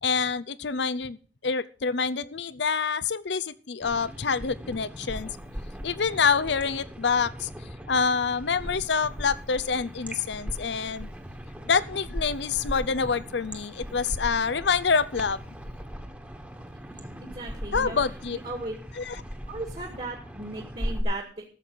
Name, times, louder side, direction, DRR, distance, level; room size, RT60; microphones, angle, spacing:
voice 1, 0.0-5.3 5.8-7.5 7.9-11.1 11.7-15.4 17.7-18.4 19.0-19.2, left 5 dB, 75° left, 18 dB, 0.7 m, -26 dB
sound 1, 3.8-21.0, equal, 10° right, 1.5 m, -38 dB
voice 2, 17.2-18.0 18.3-18.7 19.5-21.4, right 2 dB, 35° right, 2 dB, 2.0 m, -36 dB
13.5 x 7.6 x 6.2 m, 0.41 s
head